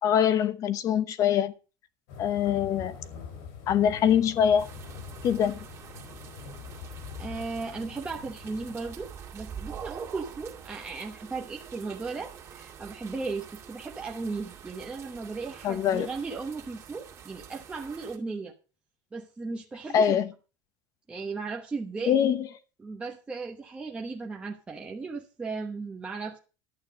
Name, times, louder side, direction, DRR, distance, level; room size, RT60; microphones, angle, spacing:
voice 1, 0.0-1.5 2.2-3.0 3.7-4.7 5.2-5.6 15.6-16.1 19.9-20.3 22.1-22.5, left 9 dB, 35° left, 0.9 m, -23 dB
sound 1, 2.1-8.7, left 6 dB, 75° left, 4.2 m, -44 dB
sound 2, 4.6-18.2, right 7 dB, 30° right, 2.3 m, -46 dB
voice 2, 7.2-18.5 19.1-20.2 21.1-22.2 22.8-26.4, right 4 dB, 10° right, 1.0 m, -36 dB
11.5 x 8.7 x 5.2 m
cardioid pair, 165°, 10 cm